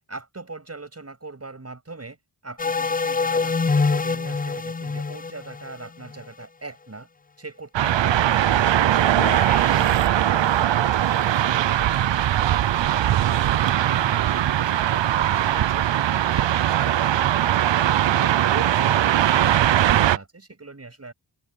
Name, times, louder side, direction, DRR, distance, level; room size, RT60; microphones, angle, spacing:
voice 1, 0.1-2.2 2.4-7.1 7.4-13.5 13.8-21.1, right 3 dB, 30° right, 7.0 m, -40 dB
sound 1, 2.6-6.4 9.2-10.7, left 4 dB, 20° left, 0.4 m, -26 dB
sound 2, 7.7-20.2, right 11 dB, 70° right, 0.6 m, -20 dB
open air
wide cardioid pair, 110°, 46 cm